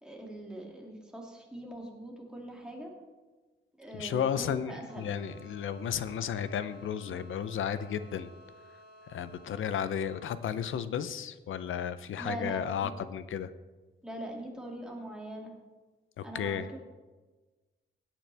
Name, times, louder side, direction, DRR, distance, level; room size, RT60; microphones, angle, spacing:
voice 1, 0.0-2.9 3.8-5.1 12.2-12.9 14.0-15.5 16.2-16.8, right 1 dB, 5° right, -2 dB, 2.5 m, -42 dB
voice 2, 4.0-8.3 9.1-13.5 16.2-16.7, left 8 dB, 90° left, 13 dB, 0.6 m, -33 dB
sound 1, 4.9-10.2, equal, 30° right, 4.4 m, -55 dB
17.0 x 9.0 x 3.4 m, 1.3 s
wide cardioid pair, 130°, 20 cm